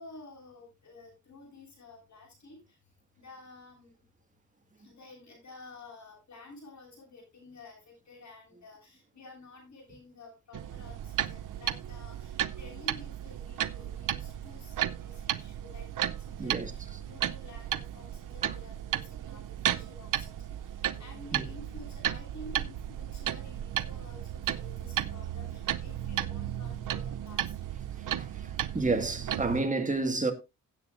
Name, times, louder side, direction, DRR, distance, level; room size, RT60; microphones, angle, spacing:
voice 1, 0.0-2.6 3.2-4.0 4.8-27.7, left 3 dB, 65° left, 7.8 m, -51 dB
sound 1, 10.5-29.6, right 11 dB, 85° right, 0.7 m, -34 dB
voice 2, 16.4-16.7 18.4-18.5 21.3-21.4 28.2-28.3 28.7-30.3, right 3 dB, 25° right, 1.9 m, -29 dB
16.5 x 8.3 x 2.6 m
cardioid pair, 90°, 31 cm